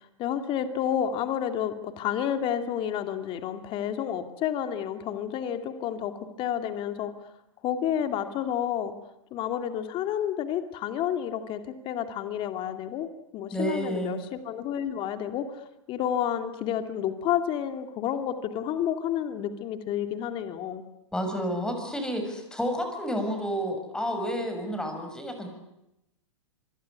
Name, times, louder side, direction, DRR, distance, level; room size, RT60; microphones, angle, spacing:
voice 1, 0.0-7.1 7.6-9.0 9.3-20.8, left 9 dB, 35° left, 8 dB, 2.5 m, -30 dB
voice 2, 13.5-14.1 21.1-25.5, equal, 5° left, 6 dB, 6.6 m, -30 dB
26.5 x 22.0 x 9.6 m, 0.87 s
hypercardioid pair, 120°, 16 cm